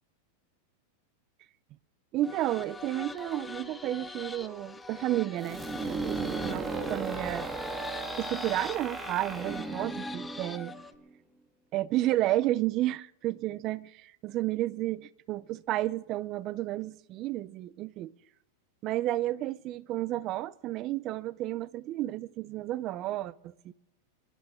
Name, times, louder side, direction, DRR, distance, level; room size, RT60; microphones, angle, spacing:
voice 1, 2.1-7.5 8.2-10.7 11.7-18.1 18.8-23.7, right 15 dB, 40° right, 0.5 m, -32 dB
sound 1, 2.2-10.9, left 3 dB, 10° left, 0.7 m, -43 dB
sound 2, 5.4-11.1, right 4 dB, 10° right, 1.8 m, -36 dB
27.0 x 11.5 x 3.7 m
supercardioid pair, 135°, 0 cm